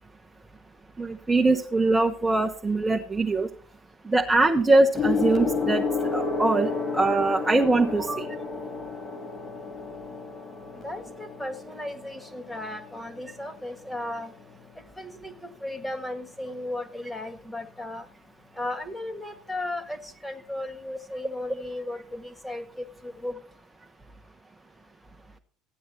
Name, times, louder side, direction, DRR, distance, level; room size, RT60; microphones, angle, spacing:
voice 1, 1.0-3.5 4.1-5.8 6.1-6.7 6.9-8.2, right 2 dB, 15° right, 0.8 m, -22 dB
Gong, 4.9-14.7 15.7-15.9, left 4 dB, 30° left, 2.4 m, -31 dB
voice 2, 10.7-14.3 15.0-18.1 18.5-23.4, left 1 dB, 5° left, 1.7 m, -35 dB
14.0 x 9.2 x 4.3 m
figure-of-eight pair, 65°, 0 cm